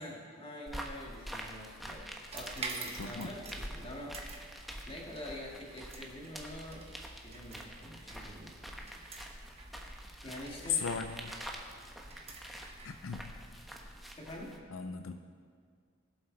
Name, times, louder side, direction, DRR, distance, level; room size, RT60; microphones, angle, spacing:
voice 1, 0.0-2.1 2.3-4.2 4.9-6.9 7.2-8.6 10.2-10.8 14.2-14.6, left 1 dB, 30° left, -2 dB, 2.3 m, -45 dB
sound 1, 0.7-14.6, equal, ahead, 1.1 m, -46 dB
sound 2, 2.3-13.6, right 3 dB, 30° right, 1.4 m, -48 dB
voice 2, 2.9-3.3 10.7-11.3 12.8-13.3 14.7-15.2, left 6 dB, 80° left, 7 dB, 0.6 m, -36 dB
21.5 x 7.8 x 4.2 m, 2.1 s
head